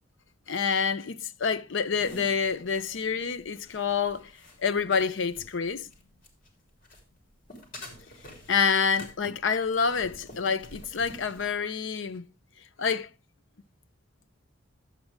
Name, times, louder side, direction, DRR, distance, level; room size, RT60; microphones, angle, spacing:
voice 1, 0.5-4.3 4.6-5.9 8.5-12.3 12.8-13.1, left 6 dB, 70° left, 0.6 m, -27 dB
sound 1, 2.0-6.5 6.8-11.5, left 1 dB, 45° left, 3.5 m, -48 dB
12.5 x 8.0 x 3.4 m
head